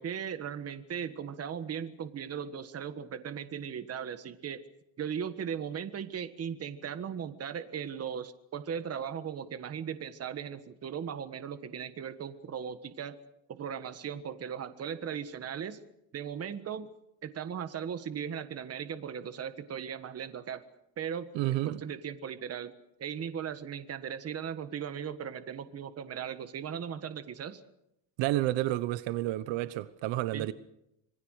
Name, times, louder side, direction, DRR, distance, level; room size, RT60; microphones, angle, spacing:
voice 1, 0.0-4.6 5.0-13.2 13.5-15.8 16.1-16.9 17.2-20.6 21.0-22.7 23.0-27.6 30.3-30.5, right 8 dB, 35° right, 1.5 m, -38 dB
voice 2, 21.3-21.8 28.2-30.5, right 16 dB, 80° right, 1.2 m, -30 dB
26.5 x 21.0 x 6.5 m
cardioid pair, 150°, 44 cm